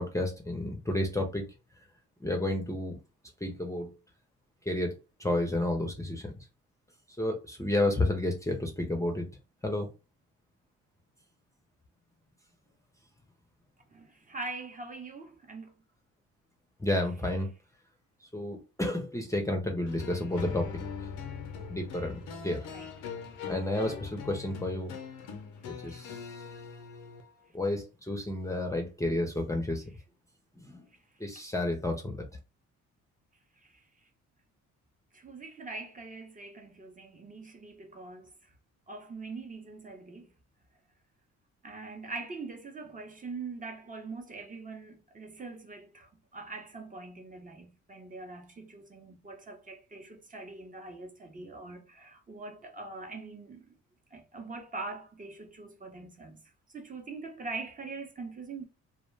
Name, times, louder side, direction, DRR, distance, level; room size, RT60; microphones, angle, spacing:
voice 1, 0.0-1.5 2.2-3.0 3.4-3.9 4.7-6.3 7.2-9.3 9.6-9.9 16.8-17.5 18.3-20.7 21.7-22.7 23.5-24.9 25.8-26.4 27.5-29.8 30.6-30.8 31.2-32.2, left 1 dB, 10° left, 0.5 m, -31 dB
voice 2, 13.9-15.7 22.7-22.9 25.8-26.0 33.6-33.8 35.1-38.5 38.9-40.3 41.6-53.7 54.1-56.4 56.7-58.6, right 3 dB, 25° right, 0.7 m, -43 dB
sound 1, 19.8-27.2, left 5 dB, 90° left, 0.6 m, -41 dB
2.3 x 2.1 x 3.2 m
cardioid pair, 90°, 30 cm